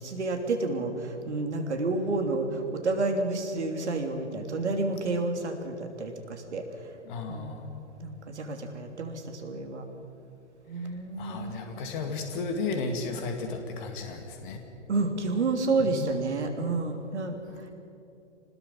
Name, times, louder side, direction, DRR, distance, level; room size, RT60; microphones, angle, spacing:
voice 1, 0.0-6.7 7.3-7.5 8.0-9.8 10.7-11.6 14.9-17.7, right 3 dB, 70° right, 5 dB, 3.1 m, -30 dB
voice 2, 7.0-7.7 10.7-14.6 15.9-16.2, left 4 dB, 45° left, 4 dB, 2.4 m, -34 dB
26.0 x 20.0 x 5.6 m, 2.8 s
figure-of-eight pair, 120°, 36 cm